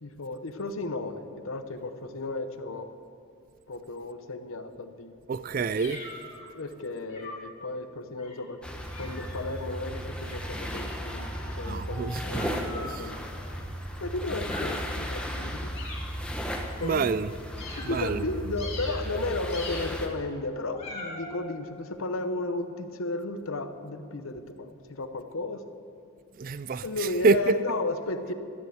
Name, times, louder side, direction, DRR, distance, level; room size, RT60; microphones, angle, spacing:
voice 1, 0.0-2.9 3.7-5.1 6.5-8.6 9.0-13.2 14.0-15.7 16.8-17.2 17.8-25.6 26.8-28.3, left 2 dB, 80° left, 9 dB, 0.9 m, -34 dB
voice 2, 5.3-6.1 11.7-12.6 12.8-13.0 16.8-17.3 17.8-18.3 26.4-27.6, right 5 dB, 40° right, 14 dB, 0.3 m, -27 dB
sound 1, 5.7-6.5 7.1-7.6 8.2-8.5 8.9-9.6 10.2-13.7 14.4-14.9 15.7-16.2 16.8-17.0 17.6-18.1 18.6-19.2 19.5-20.1 20.7-21.4, left 2 dB, 30° left, 3.1 m, -43 dB
sound 2, 8.6-20.1, equal, 5° left, 1.1 m, -35 dB
13.5 x 10.5 x 7.9 m, 2.5 s
head